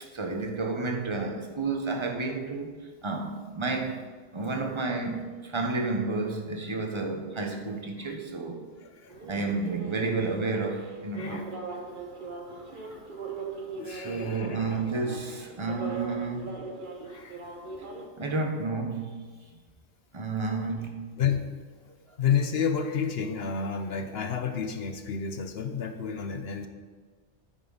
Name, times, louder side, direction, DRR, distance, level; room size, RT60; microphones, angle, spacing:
voice 1, 0.1-2.7 3.0-4.0 4.3-8.6 9.2-11.5 13.8-16.5 18.2-19.3 20.1-21.1, right 3 dB, 25° right, 3 dB, 1.2 m, -31 dB
voice 2, 8.8-9.2 11.1-11.4 12.7-13.0 13.8-14.8 17.1-17.4 21.2-21.5 22.2-26.7, left 7 dB, 65° left, 7 dB, 1.0 m, -30 dB
sound 1, 9.1-18.1, right 3 dB, 50° right, 1.3 m, -40 dB
9.5 x 9.0 x 4.1 m, 1.5 s
omnidirectional pair, 1.2 m